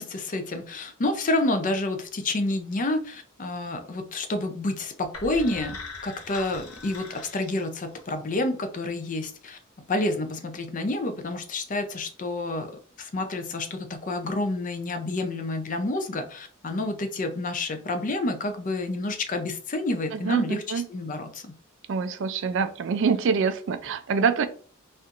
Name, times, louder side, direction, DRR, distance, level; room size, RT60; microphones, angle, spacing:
voice 1, 0.0-5.8 6.0-9.6 9.9-12.7 13.0-21.5, left 2 dB, 35° left, 7 dB, 0.5 m, -29 dB
sound 1, 5.1-8.2, left 3 dB, 85° left, 0.8 m, -41 dB
voice 2, 20.1-20.9 21.9-24.5, right 5 dB, 60° right, 10 dB, 0.4 m, -25 dB
4.2 x 2.5 x 2.5 m, 0.42 s
head